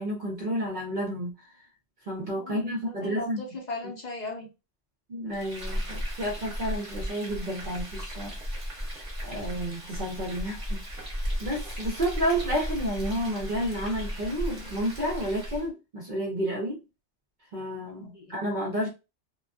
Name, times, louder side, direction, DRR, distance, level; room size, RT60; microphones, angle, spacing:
voice 1, 0.0-1.3 2.1-3.4 5.1-8.3 9.2-10.8 11.4-16.8 17.5-18.9, equal, 50° right, 0.6 m, -30 dB
voice 2, 2.2-2.7 3.0-4.5 18.1-18.4, left 2 dB, 45° left, 0.6 m, -37 dB
Frying (food), 5.3-15.7, equal, 30° right, 0.9 m, -35 dB
2.4 x 2.2 x 2.2 m
omnidirectional pair, 1.2 m